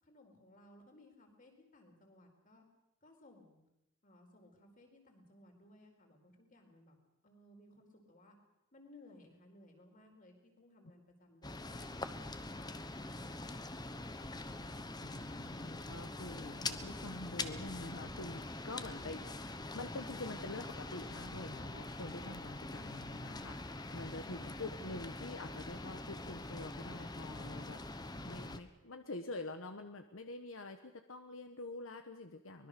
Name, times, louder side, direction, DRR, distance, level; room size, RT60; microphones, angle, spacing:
voice 1, 0.0-2.6 3.0-3.6 4.0-7.0 7.2-8.4 8.7-11.9 12.3-14.4, left 1 dB, 40° left, 3 dB, 4.7 m, -61 dB
sound 1, 11.4-28.6, left 2 dB, 20° left, 1.1 m, -44 dB
voice 2, 15.0-27.8 28.3-32.7, left 2 dB, 75° left, 7 dB, 1.2 m, -46 dB
24.0 x 20.5 x 6.8 m, 0.89 s
head